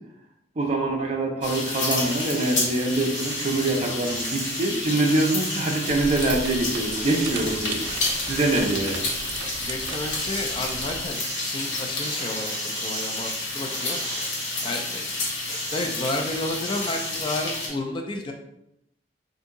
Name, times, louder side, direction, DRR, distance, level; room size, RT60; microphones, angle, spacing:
voice 1, 0.6-7.8 8.3-9.0, right 2 dB, 35° right, 1 dB, 0.5 m, -24 dB
sound 1, 1.4-17.7, left 2 dB, 75° left, 1.0 m, -30 dB
sound 2, 2.0-2.8 3.1-6.6 6.9-9.5 9.9-15.0 15.4-16.2 16.6-17.2, right 2 dB, 20° right, 0.9 m, -37 dB
sound 3, 5.9-11.1, right 4 dB, 90° right, 0.4 m, -37 dB
voice 2, 8.6-9.3 9.6-12.5 12.8-14.0 14.6-15.0 15.7-18.3, left 2 dB, 25° left, 3 dB, 0.3 m, -31 dB
2.7 x 2.6 x 3.6 m, 0.83 s
head